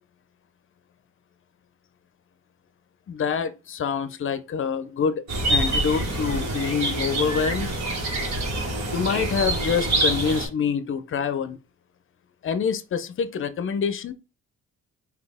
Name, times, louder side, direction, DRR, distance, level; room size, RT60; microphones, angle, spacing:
voice 1, 3.1-5.2 5.5-7.7 8.9-11.6 12.4-14.1, left 6 dB, 45° left, 0.6 m, -26 dB
sound 1, 5.3-10.5, right 1 dB, 65° right, 1.6 m, -26 dB
4.0 x 2.8 x 3.5 m
cardioid pair, 90°, 30 cm